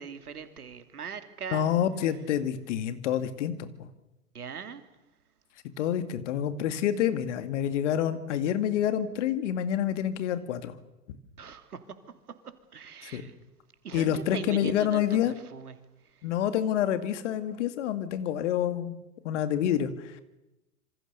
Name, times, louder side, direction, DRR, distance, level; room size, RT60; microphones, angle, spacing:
voice 1, 0.0-1.8 4.3-4.8 11.4-12.0 12.7-13.3 13.8-15.8 16.1-16.3, right 6 dB, 70° right, 8 dB, 2.9 m, -40 dB
voice 2, 1.5-3.7 5.8-10.7 13.0-13.2 13.9-15.3 16.2-18.9 19.2-20.2, left 10 dB, 50° left, 10 dB, 2.4 m, -28 dB
27.0 x 25.5 x 6.9 m, 0.96 s
figure-of-eight pair, 100°, 47 cm